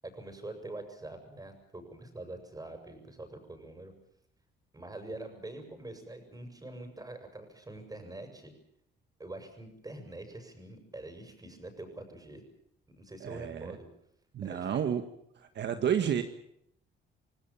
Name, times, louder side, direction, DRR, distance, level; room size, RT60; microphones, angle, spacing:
voice 1, 0.0-3.9 4.7-8.5 9.2-12.4 12.9-13.9 14.4-14.8, right 2 dB, 20° right, 6 dB, 7.3 m, -45 dB
voice 2, 13.2-13.7 14.3-15.0 15.5-16.2, right 8 dB, 60° right, 8 dB, 1.7 m, -30 dB
28.0 x 18.0 x 7.4 m, 0.71 s
cardioid pair, 90°, 20 cm